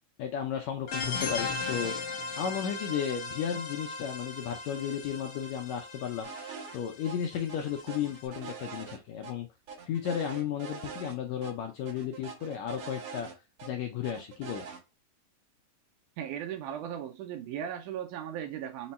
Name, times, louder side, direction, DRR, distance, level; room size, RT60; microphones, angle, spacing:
voice 1, 0.2-9.5 9.8-13.3 13.6-14.7, left 8 dB, 80° left, 1.6 m, -34 dB
sound 1, 0.9-8.2, left 4 dB, 60° left, 1.3 m, -37 dB
sound 2, 6.2-6.8 7.0-7.2 7.5-9.3 9.7-11.2 11.4-11.5 11.9-13.7 14.0-14.8, right 5 dB, 65° right, 1.6 m, -43 dB
voice 2, 16.2-18.9, right 9 dB, 80° right, 1.9 m, -37 dB
5.2 x 2.2 x 4.1 m
omnidirectional pair, 3.9 m